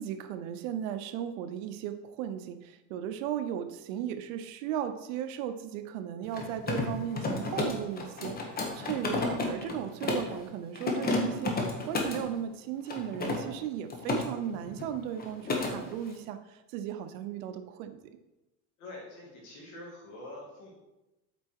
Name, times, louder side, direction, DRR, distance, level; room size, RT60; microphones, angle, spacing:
voice 1, 0.0-18.0, right 9 dB, 85° right, 10 dB, 0.8 m, -36 dB
Mechanisms, 6.2-10.3 10.8-12.2 12.9-14.2 14.5-14.9 15.2-15.7, left 3 dB, 25° left, 1.1 m, -31 dB
voice 2, 18.8-20.7, left 1 dB, 50° left, -4 dB, 2.6 m, -45 dB
8.2 x 4.6 x 4.6 m, 1.0 s
cardioid pair, 150°, 39 cm